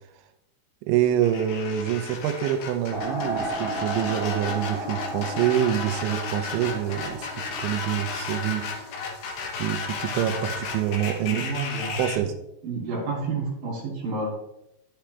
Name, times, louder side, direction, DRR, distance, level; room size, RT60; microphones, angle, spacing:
voice 1, 0.8-8.9 9.6-11.4 12.0-12.3, right 11 dB, 85° right, 8 dB, 3.2 m, -26 dB
sound 1, 1.1-12.2, left 5 dB, 70° left, 2.0 m, -34 dB
sound 2, 2.9-8.9, right 1 dB, 35° left, 1.5 m, -34 dB
voice 2, 11.2-12.1 12.6-14.5, right 3 dB, 50° right, -3 dB, 3.8 m, -30 dB
11.5 x 7.3 x 3.3 m, 0.83 s
omnidirectional pair, 5.3 m